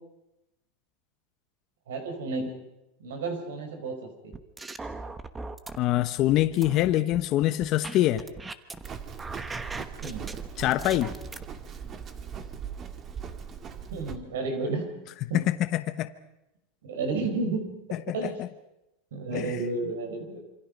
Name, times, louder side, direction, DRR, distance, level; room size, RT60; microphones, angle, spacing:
voice 1, 1.9-2.6 3.0-4.3 10.0-10.3 13.9-14.9 15.3-15.4 16.8-17.7 18.1-18.4 19.1-20.4, right 3 dB, 90° right, 5 dB, 5.2 m, -32 dB
sound 1, 4.3-5.8 6.2-8.9 9.2-11.4, right 3 dB, 10° right, 1.2 m, -39 dB
voice 2, 5.8-8.2 10.6-11.1 15.3-16.1 18.1-18.3 19.3-19.4, left 14 dB, 45° left, 9 dB, 1.1 m, -24 dB
Livestock farm animals working animals, 8.8-14.2, right 7 dB, 30° right, 1.9 m, -39 dB
27.5 x 25.0 x 5.4 m, 0.91 s
supercardioid pair, 140°, 0 cm